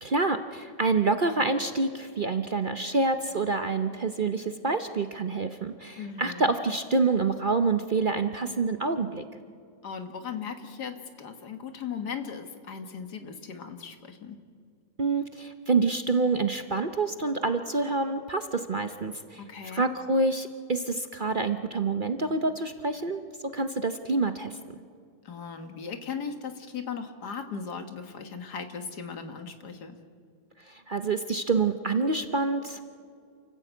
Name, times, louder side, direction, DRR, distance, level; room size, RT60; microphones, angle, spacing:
voice 1, 0.0-9.2 15.0-19.4 19.7-23.2 23.5-24.6 30.7-32.8, right 3 dB, 40° right, 8 dB, 0.8 m, -27 dB
voice 2, 6.0-6.5 9.8-14.4 19.4-19.9 25.2-30.0, left 6 dB, 80° left, 7 dB, 2.2 m, -38 dB
28.5 x 14.5 x 8.3 m, 2.3 s
omnidirectional pair, 1.7 m